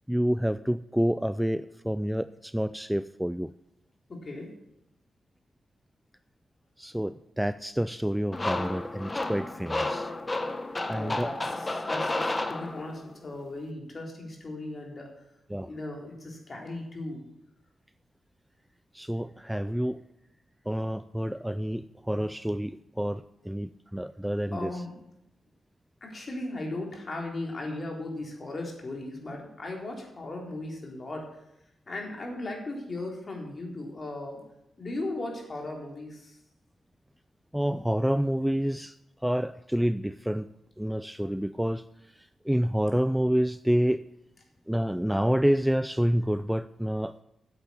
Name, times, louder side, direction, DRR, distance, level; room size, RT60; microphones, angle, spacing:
voice 1, 0.1-3.5 6.8-10.1 10.9-11.3 15.5-15.7 18.9-20.0 20.7-24.7 37.5-39.0 39.2-40.5 40.8-41.8 42.2-44.0 44.7-47.2, equal, 5° right, 14 dB, 0.4 m, -28 dB
voice 2, 4.1-4.5 10.9-15.1 15.6-17.2 24.5-25.0 26.0-31.3 31.9-34.4 34.8-36.4, left 2 dB, 45° left, 1 dB, 3.9 m, -37 dB
sound 1, 8.3-13.1, left 2 dB, 25° left, 1.2 m, -31 dB
9.5 x 8.0 x 8.7 m, 0.84 s
supercardioid pair, 50°, 0 cm